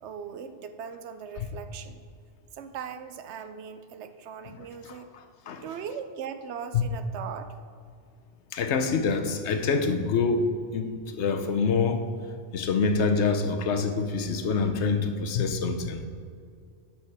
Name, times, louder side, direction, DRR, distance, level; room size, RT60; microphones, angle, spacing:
voice 1, 0.0-2.0 2.5-5.1 5.6-7.8, right 7 dB, 75° right, 10 dB, 0.9 m, -39 dB
voice 2, 4.8-5.6 6.7-6.8 8.5-12.1 12.5-16.0, left 4 dB, 75° left, 7 dB, 1.0 m, -26 dB
11.5 x 6.0 x 4.2 m, 2.3 s
omnidirectional pair, 1.2 m